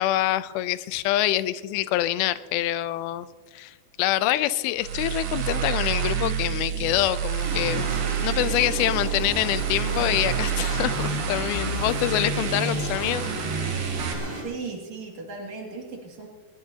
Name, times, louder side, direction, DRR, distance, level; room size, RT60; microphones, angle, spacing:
voice 1, 0.0-3.3 3.5-13.3 13.5-13.7, left 14 dB, 85° left, 15 dB, 2.5 m, -26 dB
sound 1, 4.8-14.1, right 7 dB, 80° right, 3.7 m, -28 dB
sound 2, 7.4-14.4, right 1 dB, 35° right, 5.5 m, -34 dB
voice 2, 14.4-16.3, right 4 dB, 50° right, 0 dB, 3.3 m, -36 dB
21.0 x 20.5 x 2.8 m, 1.4 s
omnidirectional pair, 4.4 m